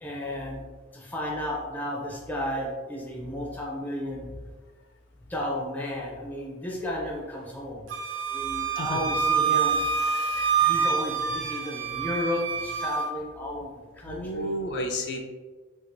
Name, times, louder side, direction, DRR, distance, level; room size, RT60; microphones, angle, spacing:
voice 1, 0.0-0.6 0.9-4.3 5.3-7.8 8.3-9.8 10.6-14.6, left 1 dB, 10° left, -2 dB, 0.5 m, -33 dB
Wind instrument woodwind instrument, 7.9-13.1, right 6 dB, 85° right, 0.4 m, -26 dB
voice 2, 10.1-10.9 11.3-11.5 14.0-15.2, left 1 dB, 60° left, 2 dB, 0.4 m, -33 dB
4.5 x 2.4 x 2.6 m, 1.4 s
head